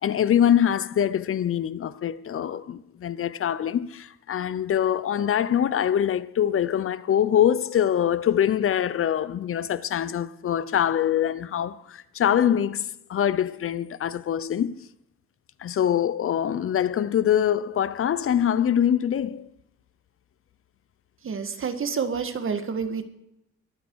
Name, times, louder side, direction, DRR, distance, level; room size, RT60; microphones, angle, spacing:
voice 1, 0.0-14.9 15.6-19.5, left 9 dB, 45° left, 0.7 m, -24 dB
voice 2, 21.2-23.0, right 6 dB, 45° right, 1.7 m, -28 dB
22.5 x 8.5 x 4.7 m
cardioid pair, 90°, 30 cm